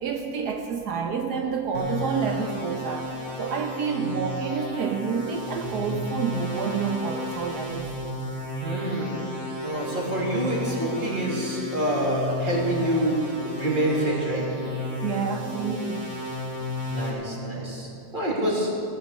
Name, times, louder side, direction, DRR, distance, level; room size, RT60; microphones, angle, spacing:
voice 1, 0.0-3.1 3.4-7.9 15.0-16.1, right 6 dB, 70° right, 4 dB, 1.4 m, -28 dB
sound 1, 1.7-17.1, left 1 dB, 45° right, 2.6 m, -33 dB
voice 2, 8.6-9.2 9.6-13.2 13.5-14.4 16.9-17.9 18.1-18.7, right 1 dB, 30° right, -3 dB, 2.9 m, -26 dB
17.0 x 10.0 x 6.5 m, 2.7 s
omnidirectional pair, 1.8 m